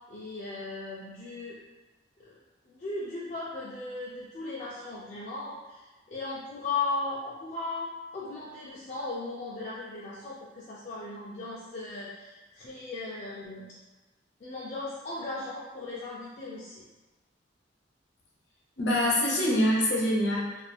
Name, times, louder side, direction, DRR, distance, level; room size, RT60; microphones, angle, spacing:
voice 1, 0.1-1.6 2.2-2.4 2.7-13.7 14.4-16.9, left 3 dB, 40° left, -7 dB, 0.4 m, -37 dB
voice 2, 18.8-20.6, left 1 dB, 70° left, -4 dB, 0.7 m, -25 dB
2.5 x 2.1 x 3.3 m, 1.2 s
head